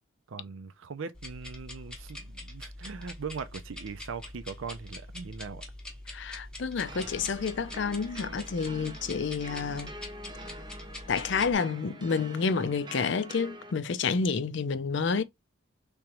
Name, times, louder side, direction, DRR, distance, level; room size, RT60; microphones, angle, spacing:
voice 1, 0.3-5.6, right 5 dB, 75° right, 0.5 m, -40 dB
sound 1, 1.1-11.5, left 1 dB, 5° left, 0.8 m, -44 dB
voice 2, 6.1-9.9 11.1-15.2, left 5 dB, 60° left, 0.4 m, -29 dB
sound 2, 6.9-13.7, right 1 dB, 20° right, 0.5 m, -46 dB
3.5 x 3.0 x 2.9 m
head